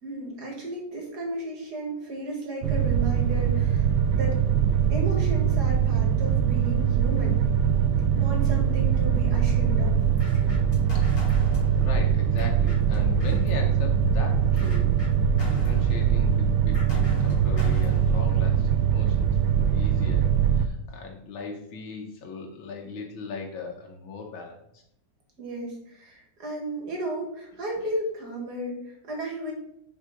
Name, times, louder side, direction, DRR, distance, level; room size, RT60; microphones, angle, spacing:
voice 1, 0.0-4.4 4.9-7.4 8.1-10.0 25.4-29.5, right 1 dB, 55° right, 0 dB, 2.5 m, -34 dB
sound 1, 2.6-20.7, right 8 dB, 85° right, 1.4 m, -22 dB
sound 2, 9.7-13.6 14.0-18.4, left 4 dB, 50° left, 2.4 m, -35 dB
voice 2, 10.9-15.0 15.4-19.3 19.6-20.3 20.5-24.8, left 4 dB, 90° left, 1 dB, 1.8 m, -39 dB
6.5 x 4.9 x 5.1 m, 0.76 s
omnidirectional pair, 2.1 m